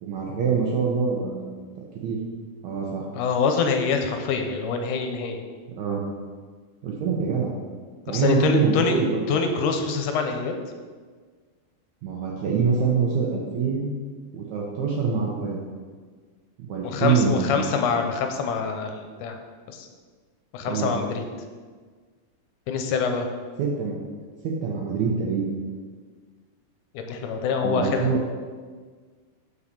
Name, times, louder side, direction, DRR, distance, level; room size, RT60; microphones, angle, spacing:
voice 1, 0.0-1.6 2.0-2.2 2.6-3.1 5.8-6.0 6.8-7.5 8.1-9.3 12.0-13.9 14.3-15.6 16.6-17.5 20.7-20.9 23.6-24.0 24.4-25.5 27.6-28.2, right 5 dB, 70° right, -2 dB, 2.0 m, -25 dB
voice 2, 3.1-5.4 8.1-9.0 9.3-10.5 16.8-19.4 19.7-19.9 20.5-21.3 22.7-23.3 26.9-28.1, left 5 dB, 85° left, 5 dB, 2.2 m, -25 dB
5.5 x 5.4 x 6.5 m, 1.5 s
omnidirectional pair, 3.6 m